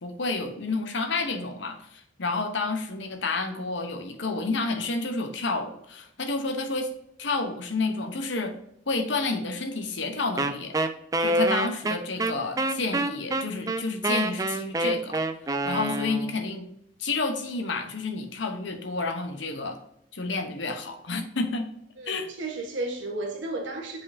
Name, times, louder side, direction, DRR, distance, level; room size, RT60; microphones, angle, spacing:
voice 1, 0.0-6.9 7.2-8.5 8.9-10.8 11.2-15.2 15.6-16.7 17.0-19.8 20.1-21.7 22.1-22.3, left 3 dB, 70° left, 6 dB, 1.0 m, -30 dB
Wind instrument woodwind instrument, 10.4-16.4, right 2 dB, 20° right, 0.4 m, -27 dB
voice 2, 22.0-24.0, right 2 dB, 75° right, 0 dB, 1.4 m, -33 dB
7.5 x 5.2 x 2.7 m, 0.76 s
head